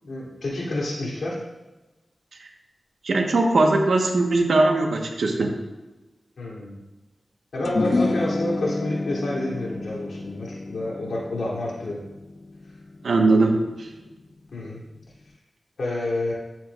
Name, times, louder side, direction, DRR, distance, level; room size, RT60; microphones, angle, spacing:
voice 1, 0.0-1.4 6.4-6.7 7.5-12.0 14.5-14.8 15.8-16.3, left 1 dB, 90° left, -5 dB, 3.2 m, -28 dB
voice 2, 3.0-5.5 13.0-13.5 13.8-13.9, right 2 dB, 85° right, 1 dB, 1.3 m, -20 dB
sound 1, 7.6-14.2, left 3 dB, 50° left, 0.3 m, -30 dB
13.5 x 8.0 x 2.5 m, 1.1 s
wide cardioid pair, 65°, 0 cm